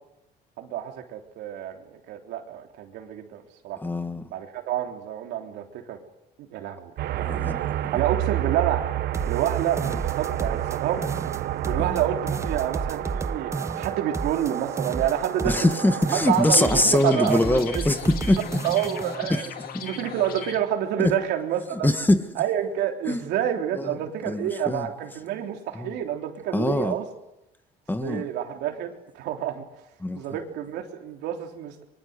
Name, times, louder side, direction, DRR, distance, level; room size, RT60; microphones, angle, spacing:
voice 1, 0.6-3.8 4.3-6.0 6.4-7.3 7.9-8.9 9.3-11.1 11.6-15.7 16.3-17.6 18.6-19.5 19.8-21.9 22.4-27.0 28.0-29.6 30.1-31.8, right 10 dB, 85° right, 3.5 m, -28 dB
voice 2, 3.8-4.3 7.2-7.7 11.9-12.0 15.4-18.4 19.3-19.4 19.7-19.8 21.0-21.1 21.8-22.3 23.1-23.2 24.3-24.9 25.8-25.9 26.5-27.0 27.9-28.2 30.0-30.2, left 1 dB, 10° left, 1.8 m, -23 dB
sound 1, 7.0-16.9, right 14 dB, 70° right, 1.3 m, -30 dB
sound 2, 9.1-10.8 11.0-12.0 12.3-15.8 16.0-17.0 17.3-19.1, right 3 dB, 15° right, 1.1 m, -32 dB
sound 3, 16.2-20.6, left 6 dB, 60° left, 2.4 m, -37 dB
24.0 x 24.0 x 8.1 m
cardioid pair, 110°, 17 cm